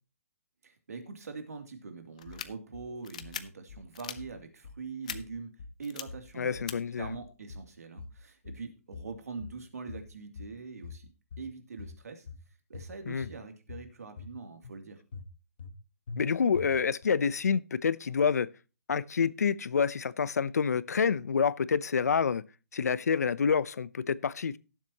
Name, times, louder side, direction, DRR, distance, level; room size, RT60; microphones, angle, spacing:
voice 1, 0.6-5.5 5.8-6.6 7.0-11.1 11.4-12.3 12.7-15.0, right 4 dB, 75° right, 2.7 m, -43 dB
sound 1, 2.2-2.5 3.0-3.4 3.9-4.2 5.1-5.2 5.8-6.0 6.7-6.8, left 9 dB, 25° left, 0.5 m, -39 dB
sound 2, 2.3-2.9 3.2-3.9 4.2-4.9 5.1-5.8 6.1-6.8 7.0-7.7 8.0-8.7 8.9-9.6 9.9-10.6 10.8-11.5 11.8-12.4 12.7-13.4 13.7-14.3 14.6-14.8 15.1-15.8 16.1-16.2 16.5-17.0, left 4 dB, 40° left, 1.1 m, -45 dB
voice 2, 6.4-7.1 13.1-13.3 16.2-18.5 18.9-22.4 22.7-24.6, left 6 dB, 80° left, 0.6 m, -28 dB
18.0 x 7.4 x 2.9 m
hypercardioid pair, 180°, 8 cm